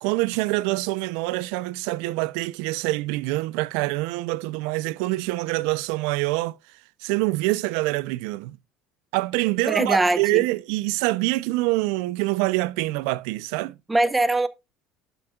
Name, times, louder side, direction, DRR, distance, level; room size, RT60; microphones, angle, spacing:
voice 1, 0.0-6.6 7.0-8.6 9.1-13.7, right 20 dB, 80° right, 0.4 m, -25 dB
voice 2, 9.7-10.4 13.9-14.5, right 2 dB, 10° right, 0.7 m, -21 dB
12.0 x 5.9 x 2.3 m
supercardioid pair, 105°, 0 cm